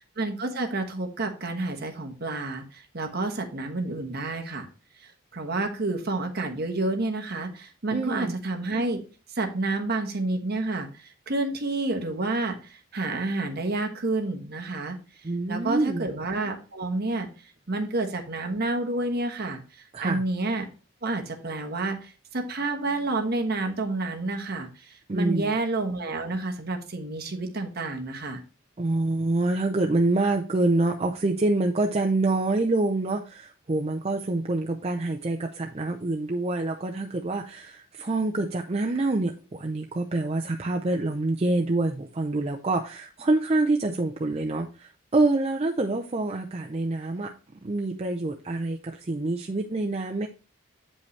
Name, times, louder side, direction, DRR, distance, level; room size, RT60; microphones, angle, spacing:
voice 1, 0.2-4.7 5.0-9.0 9.3-15.0 15.5-17.3 17.7-20.7 21.0-28.4, right 2 dB, 50° right, 4 dB, 1.2 m, -29 dB
voice 2, 7.9-8.3 15.2-16.1 19.9-20.2 25.1-25.5 28.8-47.3 47.6-50.3, right 2 dB, 30° right, 3 dB, 0.5 m, -26 dB
8.4 x 5.4 x 3.2 m, 0.36 s
head